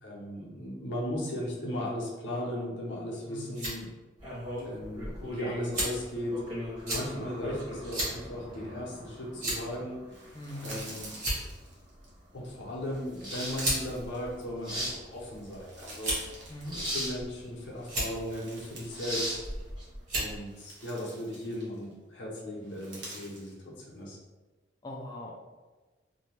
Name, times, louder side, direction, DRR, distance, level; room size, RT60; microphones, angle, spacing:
voice 1, 0.0-3.9 4.6-6.4 6.9-10.0 10.6-11.1 12.3-16.2 16.7-19.4 20.1-24.2, left 1 dB, 70° left, -3 dB, 0.7 m, -37 dB
sound 1, 3.4-3.8 4.6-4.7 5.7-6.1 6.9-7.0 7.9-8.1 8.5-8.6 9.4-9.7 10.6-10.8 11.1-11.6 12.7-12.9 13.6-13.8 14.7-15.2 16.0-16.4 17.1-17.5 17.8-18.1 19.3-19.6 20.1-20.3, right 1 dB, 40° right, 1.3 m, -32 dB
sound 2, 4.2-20.4, equal, 25° right, 1.0 m, -39 dB
sound 3, 10.1-12.1 12.8-14.8 15.2-17.4 17.7-19.2 19.4-19.6 20.2-21.9 22.6-23.5, right 2 dB, 70° right, 0.8 m, -48 dB
voice 2, 10.3-10.7 16.5-16.8 24.8-25.3, left 1 dB, 20° left, -1 dB, 0.3 m, -41 dB
2.6 x 2.1 x 3.1 m, 1.2 s
head